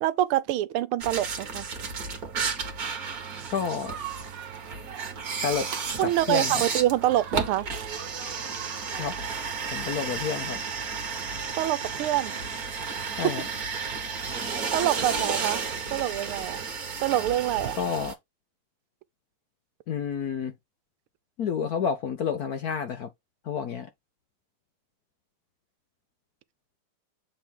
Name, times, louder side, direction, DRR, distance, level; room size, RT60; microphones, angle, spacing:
voice 1, 0.0-1.7 6.0-7.6 11.6-12.4 14.4-15.6 15.9-16.6 17.0-17.8, right 13 dB, 80° right, 1.5 m, -26 dB
sound 1, 1.0-18.1, right 5 dB, 45° right, 1.9 m, -33 dB
sound 2, 3.1-9.9, right 8 dB, 65° right, 1.5 m, -43 dB
voice 2, 3.5-4.0 5.4-5.7 6.0-6.6 9.0-9.2 9.7-10.6 13.2-13.4 17.8-18.2 19.9-20.6 21.4-23.1 23.4-23.9, left 7 dB, 65° left, 1.0 m, -29 dB
7.4 x 3.5 x 4.5 m
omnidirectional pair, 2.4 m